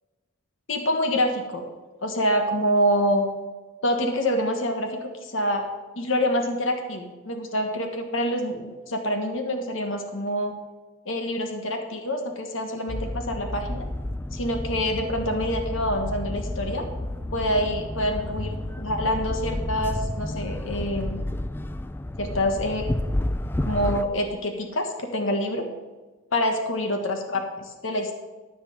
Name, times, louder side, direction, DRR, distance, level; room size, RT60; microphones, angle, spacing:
voice 1, 0.7-1.6 2.0-3.3 3.8-4.9 5.3-5.7 6.0-10.5 11.0-13.8 14.3-16.8 17.3-21.2 22.2-22.9 23.6-25.6 26.3-28.1, equal, 70° left, 4 dB, 1.5 m, -26 dB
sound 1, 12.9-24.0, left 1 dB, 10° left, 0.4 m, -31 dB
13.5 x 5.1 x 7.7 m, 1.2 s
head